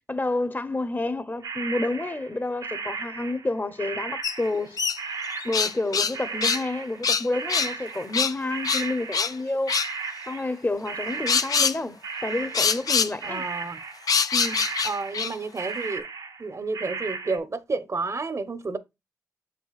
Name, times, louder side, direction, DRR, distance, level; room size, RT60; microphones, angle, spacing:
voice 1, 0.1-4.8 5.4-9.8 10.3-13.4 14.3-14.6, left 2 dB, 30° left, 0.9 m, -29 dB
sound 1, 1.4-3.5 3.8-10.6 10.9-14.1 14.4-15.3 15.6-17.4, right 5 dB, 85° right, 1.2 m, -35 dB
sound 2, 4.2-4.3 4.8-6.1 6.4-6.6 7.0-7.7 8.1-8.3 8.6-9.3 9.7-9.9 11.3-11.8 12.5-13.1 14.1-15.3, left 5 dB, 70° left, 0.6 m, -24 dB
voice 2, 13.2-13.8 14.8-16.1 16.4-18.8, right 3 dB, 50° right, 1.0 m, -30 dB
7.0 x 5.6 x 2.4 m
cardioid pair, 40°, 6 cm